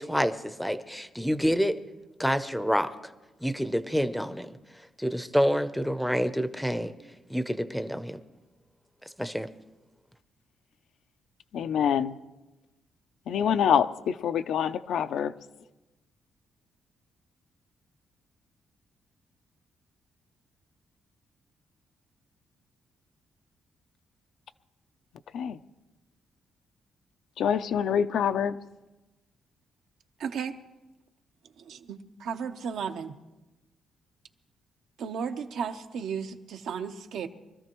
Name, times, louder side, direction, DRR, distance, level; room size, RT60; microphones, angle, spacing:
voice 1, 0.0-1.8 2.2-3.1 3.4-4.6 5.0-6.9 7.3-8.2 9.2-9.5, equal, ahead, 0.6 m, -28 dB
voice 2, 11.5-12.2 13.3-15.3 25.3-25.6 27.4-28.6, left 8 dB, 75° left, 0.5 m, -26 dB
voice 3, 30.2-30.6 31.6-33.1 35.0-37.3, right 6 dB, 75° right, 0.9 m, -34 dB
24.0 x 13.5 x 3.1 m
cardioid pair, 150°, 0 cm